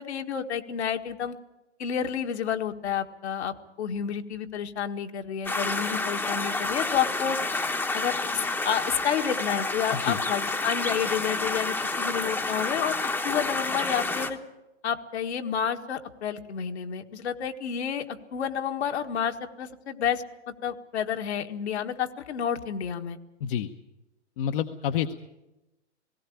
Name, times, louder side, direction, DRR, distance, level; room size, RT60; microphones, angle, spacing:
voice 1, 0.0-1.3 1.8-7.4 7.9-13.0 13.2-14.4 14.8-23.2, left 8 dB, 65° left, 5 dB, 1.8 m, -30 dB
sound 1, 5.4-14.3, left 3 dB, 5° left, 1.0 m, -29 dB
voice 2, 24.4-25.1, left 9 dB, 50° left, 6 dB, 1.0 m, -28 dB
18.5 x 17.0 x 8.6 m, 0.97 s
hypercardioid pair, 135°, 36 cm